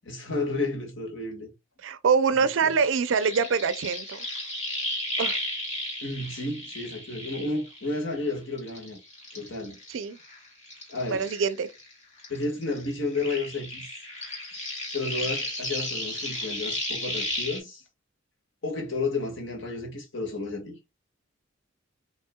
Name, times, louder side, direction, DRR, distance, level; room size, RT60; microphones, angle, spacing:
voice 1, 0.0-1.5 2.6-2.7 6.0-9.0 9.3-9.8 10.9-11.2 12.3-13.9 14.9-17.8 18.6-20.8, left 3 dB, 65° left, 1.6 m, -32 dB
voice 2, 1.8-4.2 5.2-5.4 9.9-10.2 11.1-11.7, right 5 dB, 70° right, 0.4 m, -24 dB
sound 1, 2.7-8.2 8.6-11.9 12.2-17.6, left 1 dB, 30° left, 2.0 m, -34 dB
5.5 x 3.0 x 2.2 m
head